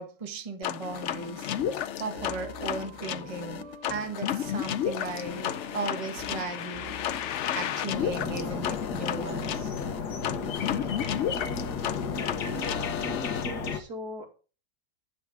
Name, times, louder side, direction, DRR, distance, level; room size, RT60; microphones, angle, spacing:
voice 1, 0.0-1.5 2.0-6.9 7.5-9.7, right 3 dB, 25° right, 1.1 m, -37 dB
sound 1, 0.6-13.4, left 10 dB, 65° left, 0.7 m, -33 dB
sound 2, 0.9-13.6, right 2 dB, 50° right, 2.5 m, -47 dB
sound 3, 7.9-13.8, left 6 dB, 90° left, 1.8 m, -33 dB
voice 2, 12.4-12.7 13.0-14.4, right 2 dB, 75° right, 2.8 m, -41 dB
10.5 x 8.8 x 3.6 m
omnidirectional pair, 1.7 m